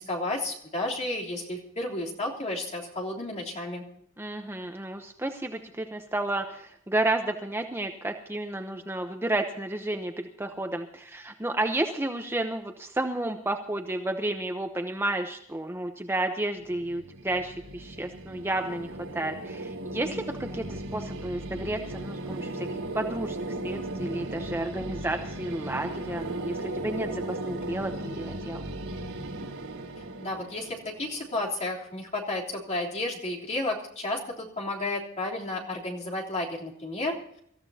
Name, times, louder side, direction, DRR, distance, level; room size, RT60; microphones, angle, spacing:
voice 1, 0.0-3.8 30.2-37.2, left 2 dB, 35° left, -2 dB, 3.4 m, -32 dB
voice 2, 4.2-22.7 22.9-28.6, right 1 dB, 10° right, 5 dB, 0.8 m, -31 dB
sound 1, 16.6-31.6, right 1 dB, 90° right, 3.6 m, -37 dB
25.5 x 14.5 x 2.8 m, 0.70 s
head